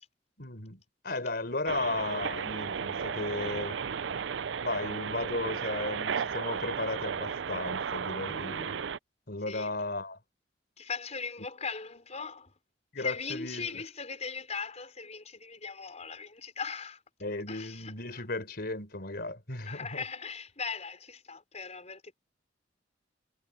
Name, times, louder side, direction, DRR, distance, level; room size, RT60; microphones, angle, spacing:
voice 1, 0.4-3.8 4.6-8.8 9.3-10.2 12.9-13.8 17.2-20.0, left 2 dB, 55° left, 4.3 m, -35 dB
sound 1, 1.7-9.0, right 6 dB, 75° right, 0.5 m, -34 dB
voice 2, 10.8-12.5 13.0-17.0 17.5-18.2 19.6-22.1, left 5 dB, 40° left, 4.8 m, -39 dB
head